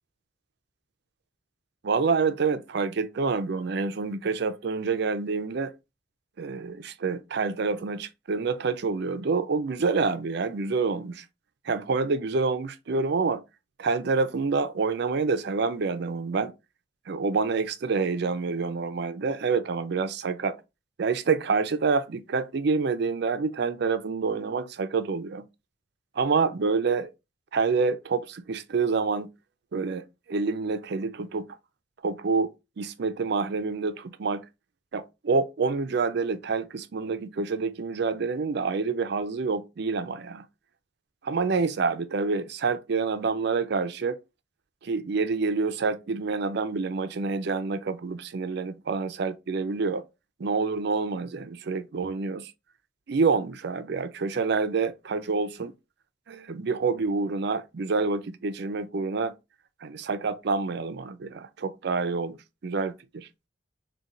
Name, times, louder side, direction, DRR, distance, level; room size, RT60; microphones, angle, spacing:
voice 1, 1.8-5.7 6.4-11.2 11.7-13.4 13.8-16.5 17.1-20.6 21.0-25.4 26.2-27.1 27.5-29.3 29.7-31.5 32.0-32.5 32.8-34.4 34.9-40.4 41.2-44.2 44.8-50.0 50.4-52.5 53.1-55.7 56.3-59.3 59.8-62.4 62.6-63.3, right 4 dB, 60° right, 0.5 m, -27 dB
4.1 x 2.3 x 3.7 m
head